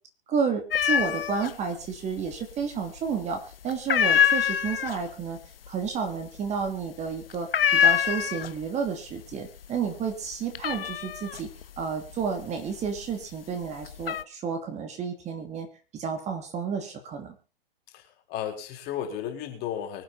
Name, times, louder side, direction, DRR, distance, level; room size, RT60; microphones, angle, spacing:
voice 1, 0.3-5.4 5.7-11.5 11.8-15.7 15.9-17.4, right 6 dB, 25° right, 5 dB, 2.8 m, -31 dB
sound 1, 0.7-1.5 1.8-2.6 3.0-3.3 3.7-8.8 9.1-9.7 10.0-13.1 13.6-14.2, left 9 dB, 75° left, 0.9 m, -25 dB
voice 2, 17.9-20.0, left 10 dB, 35° left, 4 dB, 4.1 m, -34 dB
24.0 x 8.6 x 4.2 m, 0.34 s
hypercardioid pair, 115°, 29 cm